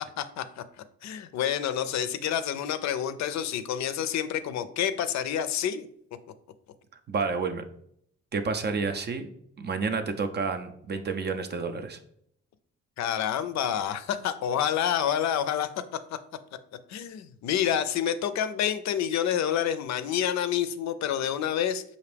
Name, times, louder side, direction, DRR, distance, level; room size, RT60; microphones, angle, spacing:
voice 1, 0.2-0.6 1.0-5.9 13.0-15.7 16.9-21.8, left 9 dB, 65° left, 12 dB, 0.5 m, -28 dB
voice 2, 7.1-7.6 8.3-9.3 9.6-12.0, right 4 dB, 35° right, 8 dB, 0.4 m, -30 dB
4.9 x 2.6 x 3.3 m, 0.70 s
cardioid pair, 90°, 30 cm